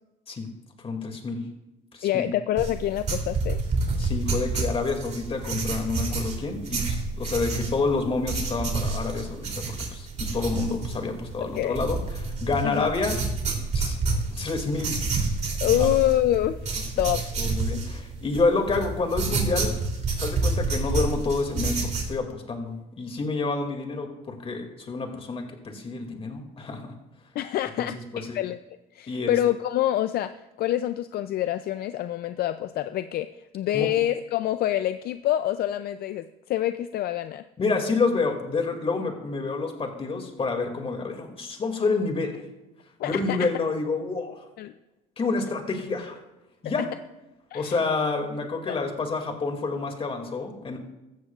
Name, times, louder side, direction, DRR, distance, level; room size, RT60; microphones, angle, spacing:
voice 1, 0.8-1.4 1.9-2.2 4.0-13.2 13.7-14.0 14.3-15.1 15.6-15.9 17.4-19.7 20.2-26.9 27.8-27.9 28.1-28.4 29.1-29.3 33.7-33.9 37.6-42.4 43.0-44.4 45.2-46.2 46.6-46.8 47.5-50.8, left 3 dB, 35° left, 4 dB, 2.4 m, -28 dB
voice 2, 2.0-3.6 11.5-11.8 12.6-12.9 15.6-16.7 17.0-17.2 27.3-28.6 28.9-30.3 30.6-37.4 43.0-43.4 44.6-44.7 47.5-47.8 48.7-48.8, left 13 dB, 65° left, 11 dB, 0.5 m, -26 dB
sound 1, 2.6-22.2, right 3 dB, 45° right, 3.1 m, -29 dB
16.0 x 13.5 x 2.4 m, 1.0 s
cardioid pair, 110°, 17 cm